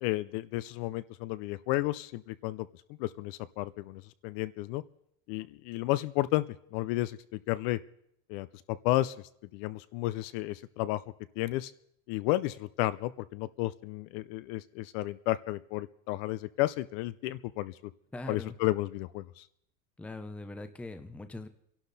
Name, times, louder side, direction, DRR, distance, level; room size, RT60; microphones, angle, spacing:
voice 1, 0.0-2.7 3.0-4.8 5.3-6.4 6.7-7.8 8.3-9.1 9.5-11.0 11.4-11.7 12.1-17.7 18.3-19.5, left 17 dB, 50° left, 16 dB, 0.5 m, -32 dB
voice 2, 18.1-18.6 20.0-21.5, left 2 dB, 5° left, 9 dB, 0.5 m, -41 dB
27.0 x 11.5 x 4.0 m, 0.75 s
cardioid pair, 165°, 38 cm